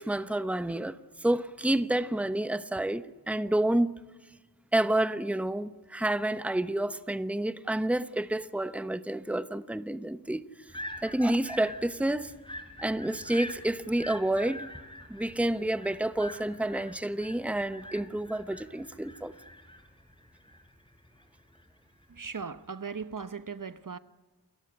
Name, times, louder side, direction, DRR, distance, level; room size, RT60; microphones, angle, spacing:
voice 1, 0.0-3.9 4.7-10.5 11.0-12.3 12.8-14.7 15.1-19.3, right 1 dB, 5° right, 1.0 m, -29 dB
sound 1, 10.7-22.2, left 1 dB, 10° left, 4.8 m, -46 dB
voice 2, 22.1-24.0, right 5 dB, 50° right, 0.9 m, -38 dB
28.5 x 14.5 x 9.9 m
wide cardioid pair, 55°, 40 cm